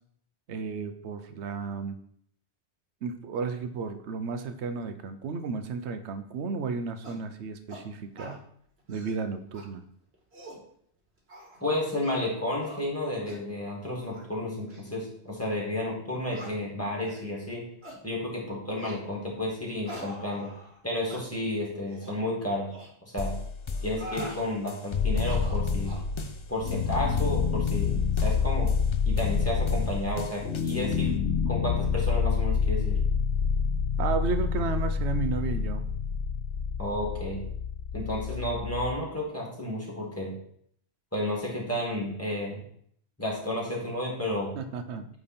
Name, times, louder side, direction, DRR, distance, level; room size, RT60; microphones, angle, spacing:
voice 1, 0.5-2.0 3.0-8.4 8.9-9.8 34.0-35.8 44.5-45.1, right 4 dB, 85° right, 9 dB, 1.0 m, -33 dB
sound 1, 7.0-7.2 7.7-7.8 8.2-8.4 8.8-9.2 9.5-9.6 10.1-10.6 11.3-11.6 12.0-12.3 12.6-12.8 13.3-13.4 14.0-14.2 14.7-14.8 15.4-15.5 16.3-16.5 17.0-17.3 17.8-18.0 18.8-19.0 19.8-20.8 21.1-21.2 21.9-22.1 22.7-22.9 23.7-24.4 25.1-26.1, equal, 65° right, 1.7 m, -44 dB
voice 2, 11.6-17.6 18.0-20.5 20.8-22.7 23.1-23.3 23.8-25.9 26.5-28.7 29.0-31.1 31.5-33.0 36.8-37.4 37.9-40.3 41.1-42.6 43.2-44.6, left 1 dB, 15° left, -3 dB, 1.9 m, -32 dB
sound 2, 23.2-31.2, left 4 dB, 45° left, 0.4 m, -35 dB
sound 3, 24.9-39.0, left 6 dB, 70° left, 1.0 m, -28 dB
8.6 x 3.5 x 4.2 m, 0.65 s
omnidirectional pair, 1.1 m